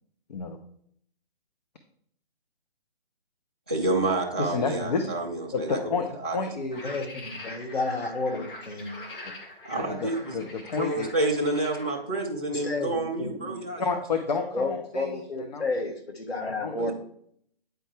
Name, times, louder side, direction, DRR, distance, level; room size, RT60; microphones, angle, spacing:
voice 1, 3.7-5.8 6.2-6.4 9.6-10.3 10.8-14.0, right 2 dB, 10° right, -8 dB, 0.3 m, -28 dB
voice 2, 4.4-5.1 5.5-6.8 9.7-11.1 13.8-14.6 14.9-15.6 16.6-16.9, left 4 dB, 45° left, 5 dB, 0.7 m, -30 dB
sound 1, 6.7-12.0, left 2 dB, 60° left, 1.8 m, -43 dB
voice 3, 6.8-9.0 12.5-13.6 14.5-16.9, left 3 dB, 80° left, 4 dB, 1.5 m, -31 dB
9.1 x 4.6 x 3.3 m, 0.66 s
figure-of-eight pair, 140°, 31 cm